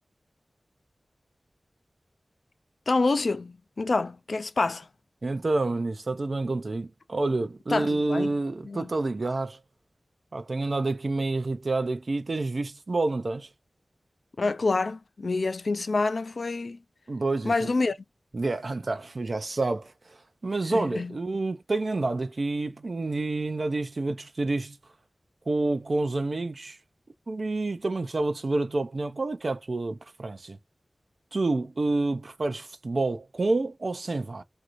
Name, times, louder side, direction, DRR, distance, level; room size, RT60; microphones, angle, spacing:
voice 1, 2.9-4.9 7.7-8.3 8.6-8.9 14.4-16.8 17.4-18.0 20.7-21.1, left 3 dB, 70° left, 0.4 m, -27 dB
voice 2, 5.2-9.6 10.3-13.5 17.1-17.7 18.3-19.9 20.4-24.8 25.5-26.8 27.3-30.6 31.3-34.4, right 2 dB, 65° right, 0.4 m, -28 dB
2.6 x 2.5 x 3.0 m
cardioid pair, 45°, 0 cm